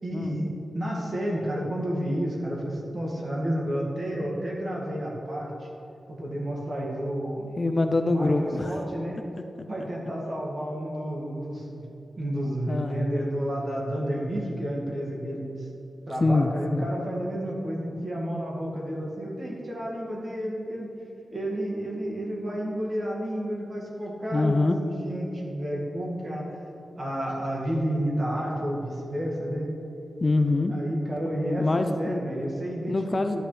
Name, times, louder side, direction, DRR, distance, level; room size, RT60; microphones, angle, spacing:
voice 1, 0.0-5.7 6.1-7.6 8.0-9.2 9.7-11.8 12.2-15.7 16.1-21.0 21.3-26.6 27.0-29.7 30.7-33.4, equal, 45° right, -3 dB, 2.0 m, -31 dB
voice 2, 7.6-8.8 12.7-13.0 16.2-16.9 24.3-24.8 30.2-30.7 31.6-32.2 32.9-33.4, left 2 dB, 35° left, 6 dB, 0.5 m, -24 dB
12.5 x 8.9 x 3.3 m, 3.0 s
wide cardioid pair, 120°, 0 cm